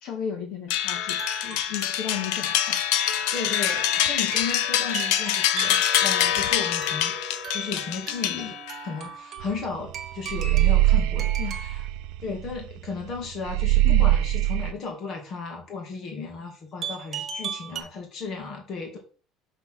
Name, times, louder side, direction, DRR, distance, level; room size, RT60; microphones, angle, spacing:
voice 1, 0.0-2.8 8.3-8.5 11.4-11.5 13.8-14.0, left 9 dB, 55° left, 2 dB, 1.9 m, -34 dB
sound 1, 0.7-8.9, left 11 dB, 80° left, 0.6 m, -25 dB
sound 2, 1.0-11.9 16.8-17.8, right 7 dB, 35° right, 1.0 m, -39 dB
voice 2, 3.3-7.1 7.5-8.5 8.8-11.8 12.2-19.0, left 4 dB, 40° left, 1 dB, 2.1 m, -35 dB
sound 3, 9.4-9.6 9.9-12.7 13.0-13.1 13.5-14.7, right 15 dB, 75° right, 0.4 m, -22 dB
5.9 x 4.0 x 6.2 m, 0.39 s
cardioid pair, 160°, 0 cm